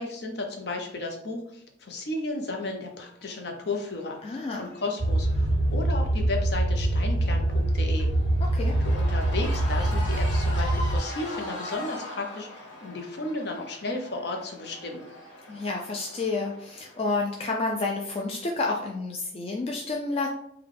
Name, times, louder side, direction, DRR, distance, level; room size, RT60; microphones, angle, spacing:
voice 1, 0.0-8.1 8.8-15.0, left 2 dB, 60° left, 3 dB, 0.7 m, -34 dB
Cheering / Crowd, 2.9-18.2, left 1 dB, 85° left, 1.2 m, -42 dB
voice 2, 4.2-4.7 8.5-8.8 15.5-20.3, left 3 dB, 30° left, 0 dB, 0.3 m, -30 dB
sound 1, 5.0-11.0, right 1 dB, 40° right, 0.5 m, -24 dB
3.4 x 2.2 x 3.8 m, 0.76 s
head